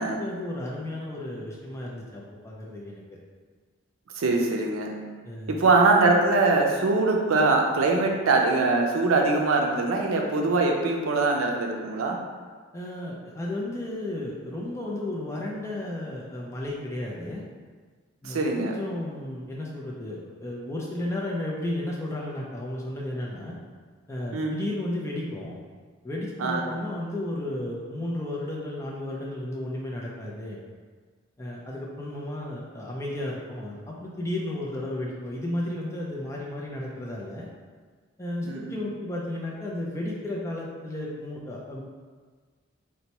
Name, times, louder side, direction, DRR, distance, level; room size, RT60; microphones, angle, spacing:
voice 1, 0.0-3.0 5.2-5.6 12.7-17.4 18.2-23.6 24.1-25.6 26.0-30.6 31.4-37.5 38.2-41.8, left 1 dB, 15° left, -4 dB, 0.4 m, -33 dB
voice 2, 4.2-4.9 5.5-12.2 18.2-18.7 24.3-24.6 26.4-26.6 38.4-38.8, right 3 dB, 85° right, 1 dB, 0.5 m, -23 dB
4.1 x 2.2 x 2.8 m, 1.5 s
head